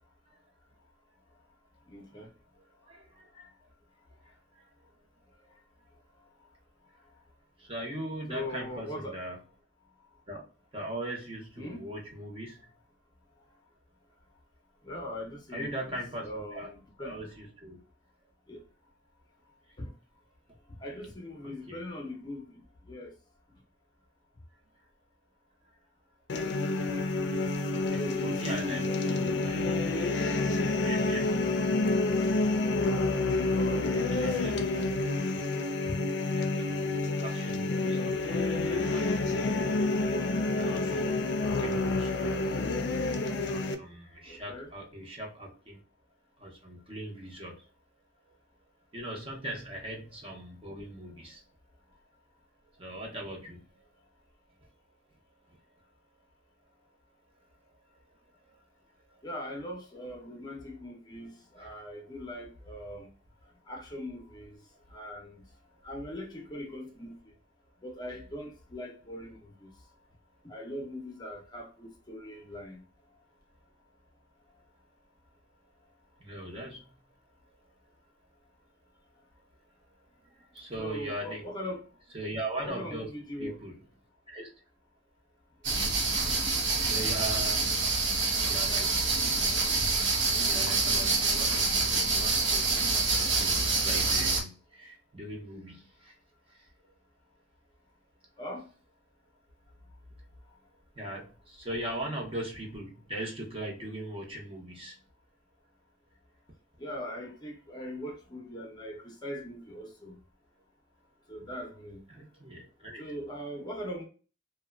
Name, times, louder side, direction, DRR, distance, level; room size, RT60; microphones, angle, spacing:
voice 1, 1.9-2.3 6.2-6.3 8.3-9.2 11.6-11.9 14.8-17.2 18.5-18.6 19.8-19.9 20.7-23.1 27.9-29.3 33.5-34.6 35.3-35.4 35.8-36.0 36.6-36.7 44.2-44.7 59.2-63.1 63.7-65.4 65.8-67.3 67.8-69.7 70.4-72.8 74.5-74.6 80.8-81.9 82.6-83.6 98.4-98.7 106.8-110.2 111.3-112.0 113.0-114.1, left 1 dB, 25° left, 0.6 m, -41 dB
voice 2, 2.9-3.5 7.6-9.4 10.3-10.4 10.7-12.6 15.5-16.7 17.0-17.8 21.4-21.8 27.7-29.6 30.8-31.4 33.9-35.0 36.3-39.2 39.5-40.2 40.5-42.5 43.5-45.8 46.4-47.6 48.9-51.4 52.8-53.8 61.6-61.7 76.2-76.9 80.5-81.4 82.1-83.1 83.4-83.8 84.3-84.5 86.8-87.7 88.4-89.0 90.4-96.1 101.0-105.0 112.1-113.0, right 1 dB, 30° right, 0.7 m, -40 dB
sound 1, 26.3-43.7, left 2 dB, 65° left, 0.4 m, -28 dB
sound 2, 85.6-94.4, right 3 dB, 75° right, 0.9 m, -27 dB
2.7 x 2.2 x 2.2 m
head